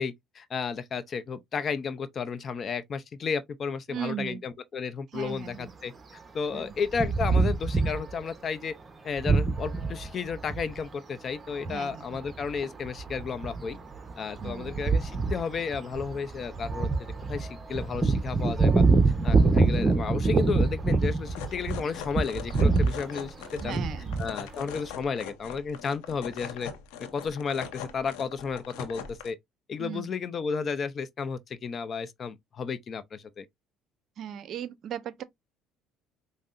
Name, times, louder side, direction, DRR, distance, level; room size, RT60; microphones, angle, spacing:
voice 1, 0.0-8.7 9.0-13.8 14.2-18.8 19.2-23.3 23.6-23.8 24.2-26.7 27.0-29.4 29.7-33.5, left 5 dB, 45° left, 0.5 m, -33 dB
voice 2, 3.9-4.4 5.1-5.7 6.5-6.7 11.7-12.2 14.4-14.7 23.6-24.2 29.8-30.1 34.2-35.2, right 9 dB, 60° right, 0.5 m, -37 dB
sound 1, 6.9-8.2 9.2-10.8 11.5-11.7 12.1-21.8 22.1-23.0 23.6-24.3, right 3 dB, 30° right, 0.8 m, -25 dB
sound 2, 21.3-29.3, left 7 dB, 85° left, 0.7 m, -41 dB
5.3 x 2.0 x 2.5 m
supercardioid pair, 80°, 0 cm